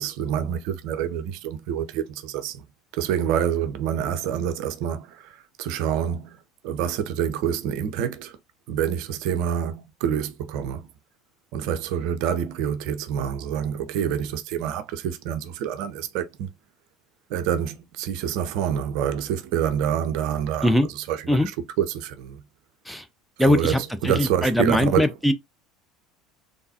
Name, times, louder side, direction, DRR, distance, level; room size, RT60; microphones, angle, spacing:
voice 1, 0.0-2.7 3.0-6.4 6.6-8.4 8.7-10.9 11.5-16.5 17.3-20.7 21.1-21.4 21.8-22.4 23.4-25.1, right 9 dB, 55° right, 0.5 m, -27 dB
voice 2, 23.4-25.3, left 1 dB, 5° left, 0.5 m, -21 dB
3.8 x 3.4 x 2.7 m
figure-of-eight pair, 65°, 0 cm